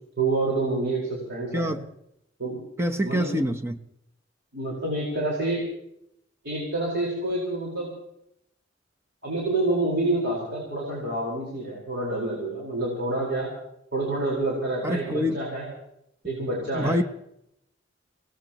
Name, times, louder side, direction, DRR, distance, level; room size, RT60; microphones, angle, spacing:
voice 1, 0.2-1.7 2.4-2.6 3.0-3.3 4.5-5.6 6.4-7.9 9.2-13.5 13.9-15.7 16.2-17.0, right 2 dB, 60° right, 4.7 m, -27 dB
voice 2, 1.5-1.8 2.8-3.8 14.8-15.4 16.7-17.0, equal, 15° right, 0.8 m, -26 dB
26.5 x 18.0 x 3.0 m
head